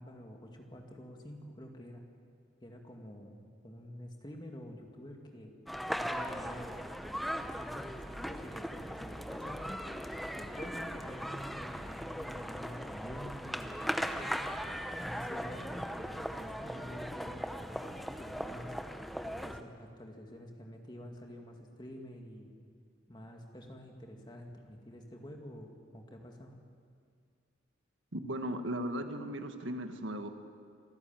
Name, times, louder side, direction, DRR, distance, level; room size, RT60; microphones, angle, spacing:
voice 1, 0.0-2.0 2.6-5.5 5.9-6.8 7.4-14.4 15.0-18.8 19.2-22.5 23.1-26.6, equal, 20° left, 2 dB, 2.2 m, -48 dB
sound 1, 5.7-19.6, equal, ahead, 0.7 m, -39 dB
voice 2, 28.1-30.3, right 1 dB, 80° right, 7 dB, 1.6 m, -37 dB
26.5 x 14.0 x 9.1 m, 2.2 s
head